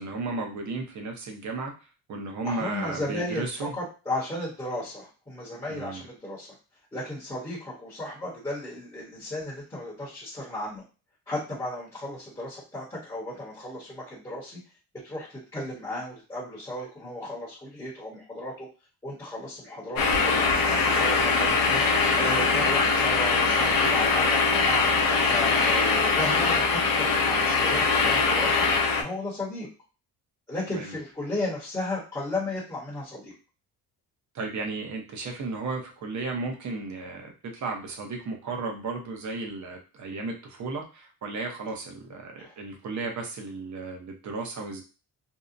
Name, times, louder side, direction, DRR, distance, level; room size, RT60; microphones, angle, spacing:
voice 1, 0.0-1.7 2.1-3.7 5.7-6.1 30.7-30.9 34.3-44.8, right 3 dB, 45° right, 2 dB, 0.8 m, -34 dB
voice 2, 2.4-6.5 6.9-10.8 11.3-14.6 15.0-18.7 19.0-24.8 25.2-28.6 28.9-29.7 30.5-33.3 42.4-42.6, left 1 dB, 10° left, -7 dB, 0.9 m, -34 dB
sound 1, 20.0-29.0, left 4 dB, 60° left, 0.6 m, -22 dB
2.7 x 2.1 x 2.5 m, 0.34 s
cardioid pair, 125°, 39 cm